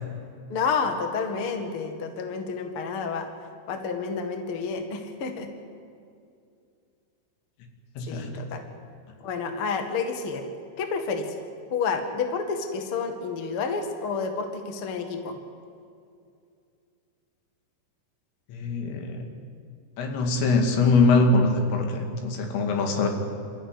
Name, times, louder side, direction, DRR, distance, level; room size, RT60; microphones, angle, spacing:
voice 1, 0.5-3.3 3.7-5.5 8.1-8.6 9.2-10.4 10.8-11.3 11.7-15.4, left 5 dB, 55° left, 5 dB, 1.5 m, -29 dB
voice 2, 8.0-8.4 18.5-19.2 20.0-23.1, left 3 dB, 80° left, 3 dB, 4.9 m, -23 dB
27.5 x 14.5 x 9.8 m, 2.4 s
omnidirectional pair, 5.7 m